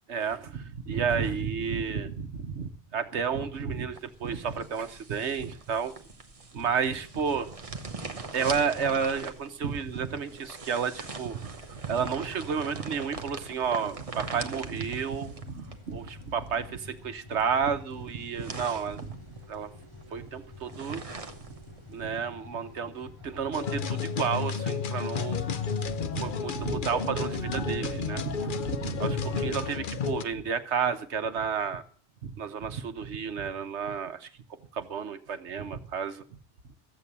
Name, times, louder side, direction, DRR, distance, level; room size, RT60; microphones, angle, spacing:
voice 1, 0.1-5.9 6.5-7.8 8.3-19.2 19.5-19.7 20.1-21.1 21.9-25.5 25.8-31.8 32.2-34.3 34.7-36.2, right 6 dB, 70° right, 1.3 m, -31 dB
sound 1, 3.9-22.2, right 3 dB, 30° right, 1.1 m, -43 dB
sound 2, 14.1-27.0, left 3 dB, 25° left, 2.6 m, -50 dB
sound 3, 23.5-30.2, left 6 dB, 50° left, 0.9 m, -32 dB
14.0 x 8.3 x 7.2 m
omnidirectional pair, 1.2 m